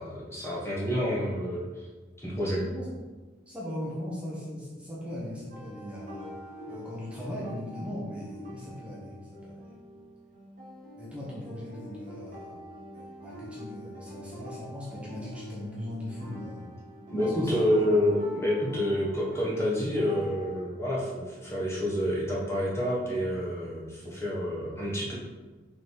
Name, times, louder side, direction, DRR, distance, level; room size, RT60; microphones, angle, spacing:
voice 1, 0.0-1.9 2.2-2.6 17.1-25.1, equal, 15° left, -6 dB, 1.3 m, -28 dB
voice 2, 3.5-6.3 6.7-9.7 11.0-16.7 17.2-17.8, left 1 dB, 5° right, -7 dB, 1.3 m, -39 dB
sound 1, 5.5-20.7, left 1 dB, 40° right, 1.9 m, -45 dB
5.5 x 4.2 x 4.7 m, 1.3 s
head